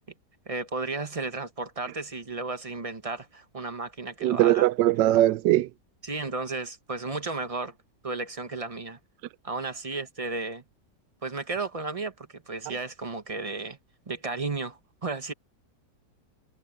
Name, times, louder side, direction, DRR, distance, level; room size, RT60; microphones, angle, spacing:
voice 1, 0.5-4.7 6.0-7.7 8.0-9.0 9.4-10.6 11.2-13.8 14.1-15.3, right 3 dB, 25° right, 1.0 m, -33 dB
voice 2, 4.2-5.7 12.7-12.8, right 14 dB, 85° right, 1.3 m, -21 dB
omnidirectional pair, 1.9 m